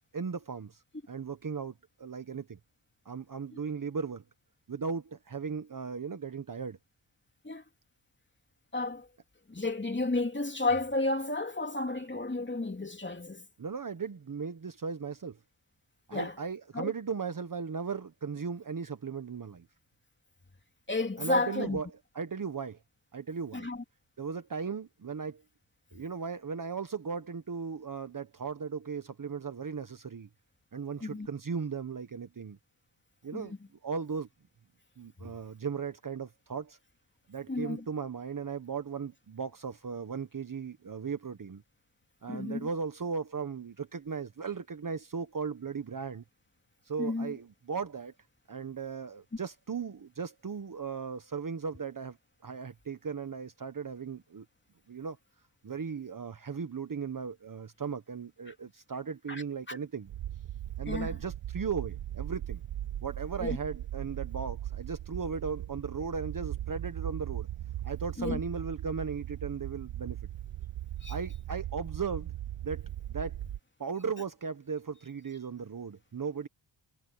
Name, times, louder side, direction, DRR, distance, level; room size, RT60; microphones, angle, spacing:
voice 1, 0.1-2.6 3.0-4.2 4.7-6.8 13.6-15.4 16.1-19.7 21.2-21.9 22.1-22.8 23.1-23.7 24.2-25.4 25.9-30.3 30.7-32.6 33.2-33.5 33.8-34.3 35.0-36.8 37.3-41.6 42.2-46.2 46.8-48.1 48.5-52.2 52.4-54.4 54.9-55.2 55.6-60.1 60.8-62.6 63.0-67.5 67.8-70.2 71.1-72.3 72.6-73.4 73.8-76.5, right 5 dB, 40° right, 1.3 m, -37 dB
voice 2, 8.7-9.1 9.5-13.4 16.1-16.3 16.7-16.9 20.9-21.8 23.5-23.8 31.0-31.3 33.3-33.6 37.5-37.8 42.3-42.7 47.0-47.3 59.3-59.8 60.9-61.1 63.4-63.6 68.2-68.4 71.0-71.1, left 2 dB, 25° left, 2.8 m, -32 dB
sound 1, 60.1-73.6, right 12 dB, 75° right, 0.9 m, -38 dB
cardioid pair, 80°, 48 cm